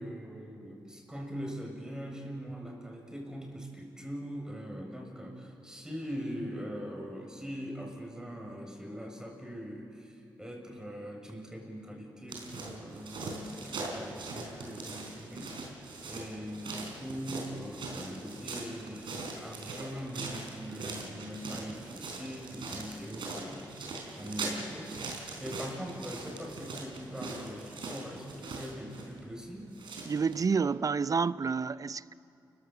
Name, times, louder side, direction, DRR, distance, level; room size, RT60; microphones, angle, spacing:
voice 1, 0.0-15.8 16.1-25.0 25.4-29.7, equal, 10° right, 7.1 m, -42 dB
sound 1, 12.3-30.5, right 3 dB, 65° right, 4.3 m, -41 dB
voice 2, 30.1-32.1, right 5 dB, 40° right, 0.6 m, -29 dB
29.5 x 16.0 x 7.0 m
hypercardioid pair, 40°, 9 cm